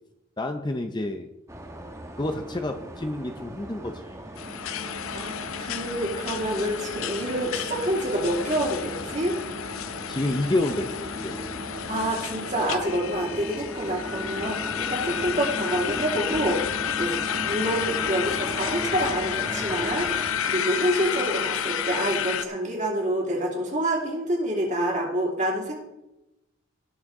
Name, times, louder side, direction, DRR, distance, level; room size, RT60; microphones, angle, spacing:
voice 1, 0.4-1.3 2.2-4.4 10.1-11.4, left 2 dB, 20° left, 6 dB, 0.5 m, -29 dB
sound 1, 1.5-20.3, right 1 dB, 15° right, 1.0 m, -38 dB
sound 2, 4.4-22.5, left 8 dB, 85° left, 0.6 m, -31 dB
voice 2, 5.1-9.4 11.9-25.8, right 1 dB, 35° right, 0 dB, 2.5 m, -27 dB
18.5 x 6.3 x 3.6 m, 0.94 s
head